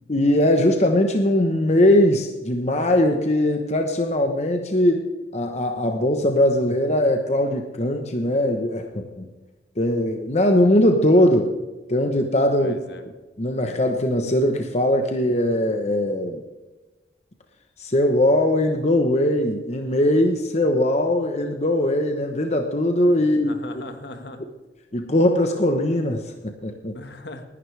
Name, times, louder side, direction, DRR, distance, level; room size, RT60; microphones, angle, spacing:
voice 1, 0.1-5.0 5.3-9.3 9.8-11.5 11.9-12.7 13.4-16.4 17.8-23.5 24.9-26.9, left 1 dB, 40° left, 4 dB, 1.1 m, -20 dB
voice 2, 12.6-13.0 23.2-24.4 26.9-27.4, left 2 dB, 70° left, 6 dB, 1.7 m, -38 dB
19.5 x 11.0 x 3.4 m, 1.2 s
head